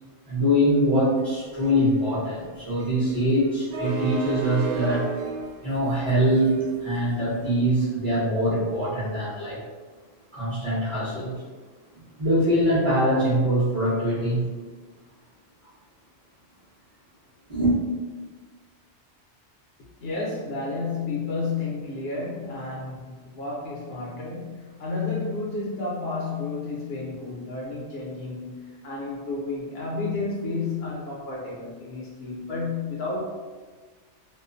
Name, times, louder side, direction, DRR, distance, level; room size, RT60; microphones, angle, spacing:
voice 1, 0.3-5.1 5.6-9.6 10.3-11.4 12.2-14.4 17.5-17.7, equal, 30° right, -13 dB, 0.7 m, -23 dB
sound 1, 1.2-7.5, right 4 dB, 80° right, 1.0 m, -34 dB
voice 2, 20.0-33.3, left 3 dB, 65° left, -5 dB, 0.7 m, -31 dB
2.3 x 2.2 x 2.4 m, 1.4 s
omnidirectional pair, 1.2 m